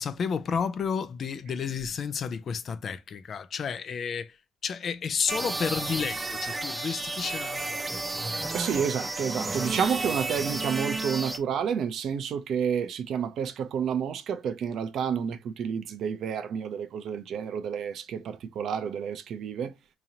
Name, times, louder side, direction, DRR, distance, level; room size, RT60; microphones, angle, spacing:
voice 1, 0.0-4.4 4.6-7.9, left 6 dB, 55° left, 0.5 m, -31 dB
sound 1, 5.3-11.4, right 2 dB, 25° right, 0.7 m, -32 dB
voice 2, 8.5-19.7, right 7 dB, 65° right, 0.6 m, -30 dB
3.8 x 3.0 x 2.8 m
supercardioid pair, 75°, 0 cm